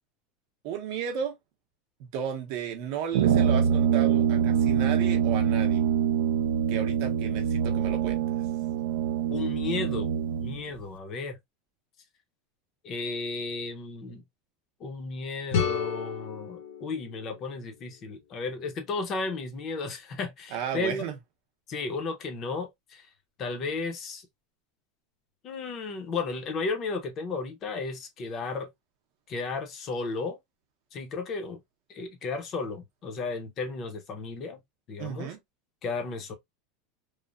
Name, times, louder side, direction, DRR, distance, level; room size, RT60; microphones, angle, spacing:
voice 1, 0.6-1.3 2.0-5.8 6.7-8.2 20.5-21.1 35.0-35.4, right 8 dB, 50° right, 0.6 m, -34 dB
Brass instrument, 3.1-10.6, right 9 dB, 90° right, 0.3 m, -25 dB
voice 2, 9.3-10.1 10.4-11.4 12.8-14.2 14.8-21.1 21.7-23.1 23.4-24.3 25.4-28.7 29.3-30.4 30.9-31.6 31.9-34.6 34.9-35.3 35.8-36.3, left 3 dB, 25° left, 0.6 m, -34 dB
sound 1, 15.5-18.4, left 6 dB, 65° left, 0.7 m, -33 dB
3.1 x 2.0 x 2.3 m
supercardioid pair, 175°, 0 cm